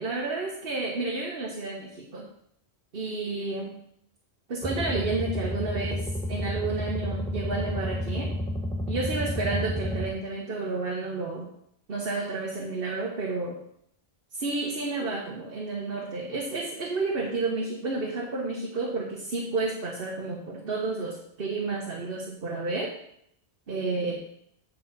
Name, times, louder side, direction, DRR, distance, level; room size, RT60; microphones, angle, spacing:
voice 1, 0.0-2.2 2.9-3.7 4.5-8.3 8.9-11.5 11.9-13.6 14.3-22.9 23.7-24.2, right 3 dB, 60° right, -1 dB, 1.3 m, -31 dB
sound 1, 4.6-10.1, left 1 dB, 5° left, 0.8 m, -31 dB
9.2 x 3.9 x 5.8 m, 0.71 s
omnidirectional pair, 1.1 m